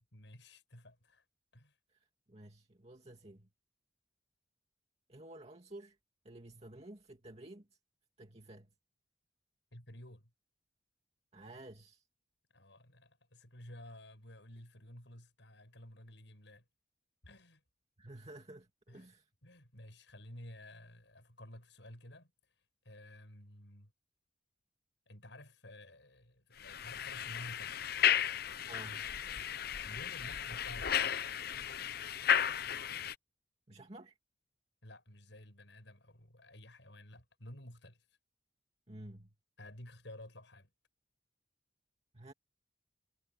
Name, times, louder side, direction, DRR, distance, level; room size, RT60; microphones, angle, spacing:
voice 1, 0.1-1.2 1.5-1.8 9.7-10.3 12.5-16.6 17.2-17.6 18.9-19.1 19.4-22.3 22.9-23.9 25.1-27.8 29.8-31.1 34.8-38.0 39.6-40.7, left 1 dB, 70° left, 7.1 m, -53 dB
voice 2, 1.9-3.5 5.1-6.0 6.2-7.8 8.2-8.7 11.3-12.1 18.0-19.3 28.7-29.1 33.7-34.2 38.9-39.4 42.1-42.3, right 1 dB, 35° right, 2.4 m, -52 dB
sound 1, 26.6-33.1, left 9 dB, 55° left, 0.7 m, -34 dB
head